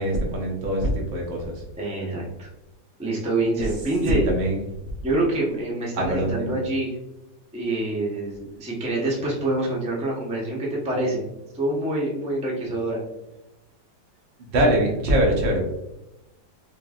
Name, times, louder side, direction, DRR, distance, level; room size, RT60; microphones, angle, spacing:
voice 1, 0.0-1.5 4.1-4.6 6.0-6.5 14.5-15.6, right 1 dB, 90° right, -1 dB, 1.7 m, -22 dB
voice 2, 1.8-2.5 3.0-4.3 5.0-7.0 7.5-11.2 11.5-13.0, right 2 dB, 10° right, -4 dB, 0.4 m, -26 dB
5.3 x 2.5 x 2.4 m, 0.92 s
omnidirectional pair, 2.0 m